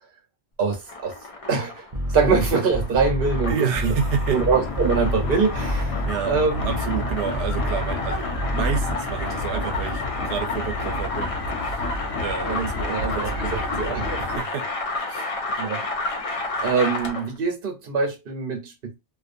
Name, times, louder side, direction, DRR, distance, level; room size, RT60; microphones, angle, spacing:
voice 1, 0.6-1.2 1.5-1.9 2.1-3.9 4.3-6.8 12.5-14.4 15.6-15.8 16.6-18.9, right 5 dB, 55° right, 1.0 m, -24 dB
sound 1, 0.7-17.4, left 2 dB, 55° left, 0.4 m, -32 dB
sound 2, 1.9-8.9, equal, 40° right, 0.5 m, -27 dB
voice 2, 3.5-4.4 6.0-14.7 15.1-15.4, right 7 dB, 85° right, 0.9 m, -30 dB
sound 3, 4.3-14.4, left 2 dB, 75° left, 0.8 m, -31 dB
2.5 x 2.4 x 2.5 m
omnidirectional pair, 1.1 m